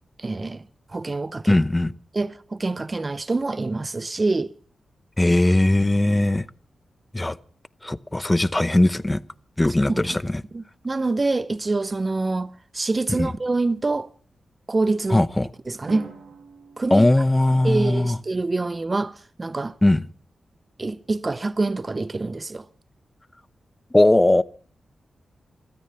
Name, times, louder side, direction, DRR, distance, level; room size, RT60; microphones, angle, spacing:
voice 1, 0.2-0.6 0.9-1.6 2.1-4.5 9.9-10.2 10.5-14.1 14.7-15.3 15.7-16.1 16.8-17.1 17.6-19.7 20.8-22.6, right 3 dB, 40° right, 0.6 m, -26 dB
voice 2, 1.5-1.9 5.2-6.5 7.1-7.4 7.8-9.2 9.6-10.4 13.2-13.3 15.1-15.5 16.9-18.2 19.8-20.1 23.9-24.4, left 1 dB, 20° left, 0.7 m, -19 dB
Drum, 15.9-17.9, right 4 dB, 85° right, 2.5 m, -43 dB
16.0 x 13.0 x 5.7 m
cardioid pair, 45°, 0 cm